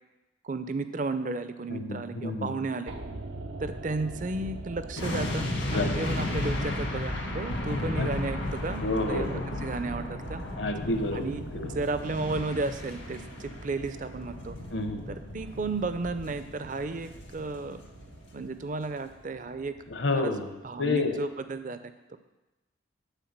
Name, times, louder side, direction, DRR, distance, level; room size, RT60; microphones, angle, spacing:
voice 1, 0.4-2.9 3.6-10.4 11.1-11.4 11.7-14.6 15.1-17.8 18.3-19.7 20.1-20.3 20.6-22.2, right 3 dB, 40° right, 11 dB, 0.5 m, -33 dB
voice 2, 1.7-2.5 5.7-5.9 8.0-8.1 8.8-9.4 10.6-11.3 11.5-11.7 14.7-15.0 19.9-20.5 20.8-21.2, left 2 dB, 65° left, 6 dB, 0.9 m, -29 dB
sound 1, 2.9-21.1 21.3-21.4, right 2 dB, 90° right, 0.7 m, -44 dB
sound 2, 5.0-18.1 18.4-18.6, left 1 dB, 80° left, 1.8 m, -34 dB
9.1 x 4.4 x 7.3 m, 1.0 s
head